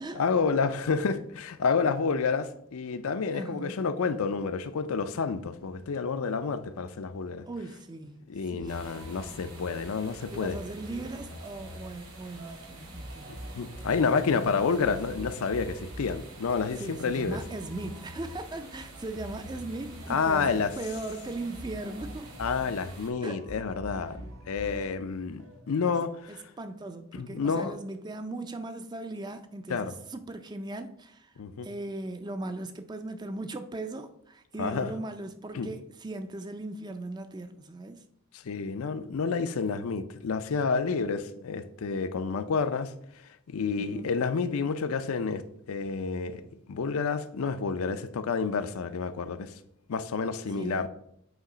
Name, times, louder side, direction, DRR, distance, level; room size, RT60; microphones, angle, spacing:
voice 1, 0.1-7.4 8.3-10.6 13.5-17.4 20.1-20.7 22.4-26.4 27.1-27.8 29.7-29.9 31.4-31.7 34.6-34.9 35.5-35.7 38.3-42.9 43.5-45.4 45.7-46.4 46.7-49.5 49.9-50.9, left 5 dB, 75° left, 0.5 m, -29 dB
voice 2, 3.3-3.8 7.5-9.1 10.3-13.3 14.4-14.9 16.7-22.3 23.2-23.4 25.8-26.0 26.3-31.3 31.6-38.0 43.8-44.1 50.5-50.9, right 2 dB, 20° right, 0.3 m, -39 dB
sound 1, 8.6-25.9, equal, 60° right, 0.7 m, -46 dB
sound 2, 8.7-23.1, right 2 dB, 90° right, 2.8 m, -48 dB
8.0 x 3.0 x 4.9 m
head